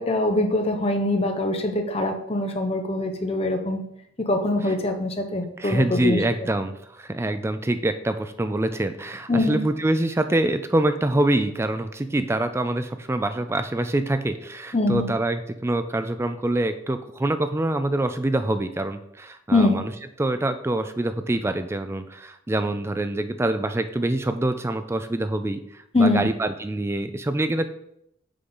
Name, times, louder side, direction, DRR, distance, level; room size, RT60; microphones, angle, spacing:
voice 1, 0.0-3.8 4.2-6.2 9.3-9.6 14.7-15.1 19.5-19.8 25.9-26.3, left 2 dB, 30° left, 4 dB, 0.8 m, -23 dB
voice 2, 5.6-19.9 20.2-27.7, right 1 dB, 15° right, 9 dB, 0.3 m, -25 dB
6.8 x 3.8 x 5.4 m, 0.75 s
head